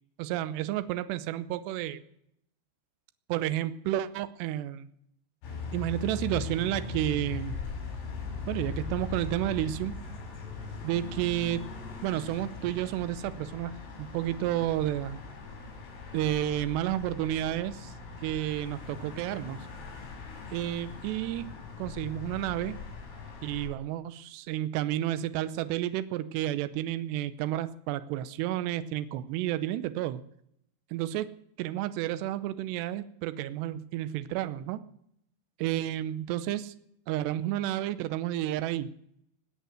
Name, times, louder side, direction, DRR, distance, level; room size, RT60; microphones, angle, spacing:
voice 1, 0.2-2.0 3.3-4.9 5.7-7.6 8.5-9.9 10.8-11.6 12.0-15.2 16.1-17.9 18.2-19.6 20.5-21.5 21.8-22.8 23.4-30.2 30.9-31.3 31.6-34.8 35.6-36.7 37.1-38.9, right 13 dB, 85° right, 12 dB, 2.4 m, -31 dB
sound 1, 5.4-23.7, left 4 dB, 75° left, 7.7 m, -40 dB
19.5 x 8.4 x 7.9 m, 0.74 s
omnidirectional pair, 5.9 m